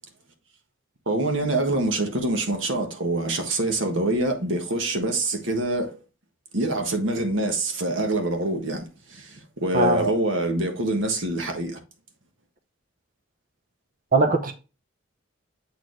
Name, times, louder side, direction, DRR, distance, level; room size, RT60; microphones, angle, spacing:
voice 1, 1.1-6.0 6.5-11.8, right 2 dB, 70° right, 1.4 m, -25 dB
voice 2, 14.1-14.5, right 3 dB, 45° right, 0.8 m, -20 dB
7.7 x 4.4 x 3.2 m
head